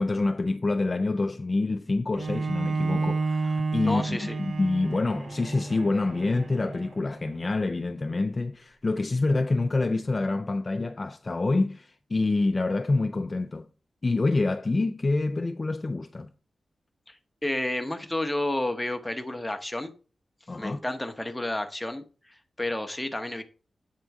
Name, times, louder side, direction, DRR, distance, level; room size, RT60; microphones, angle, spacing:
voice 1, 0.0-13.7 14.0-16.3 20.5-20.8, left 3 dB, 30° left, 0.3 m, -27 dB
Bowed string instrument, 2.1-7.4, right 3 dB, 45° right, 0.6 m, -31 dB
voice 2, 3.8-4.4 17.1-19.9 20.6-23.4, left 1 dB, 5° left, 0.7 m, -31 dB
8.0 x 3.7 x 4.6 m
wide cardioid pair, 150°, 0 cm